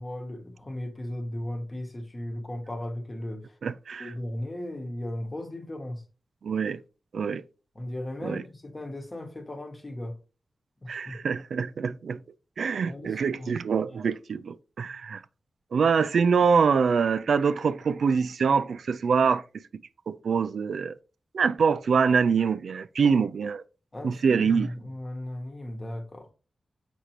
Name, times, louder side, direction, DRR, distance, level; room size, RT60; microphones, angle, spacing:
voice 1, 0.0-3.6 4.0-6.0 7.7-10.2 10.8-11.3 12.9-13.5 23.9-26.3, left 1 dB, 25° left, 1.1 m, -36 dB
voice 2, 3.6-4.1 6.4-6.8 7.1-7.4 8.2-8.4 10.9-12.2 12.6-15.2 15.7-19.6 20.1-20.9 21.3-23.6 24.0-24.7, right 5 dB, 85° right, 0.3 m, -25 dB
6.6 x 5.1 x 2.9 m
wide cardioid pair, 155°, 0 cm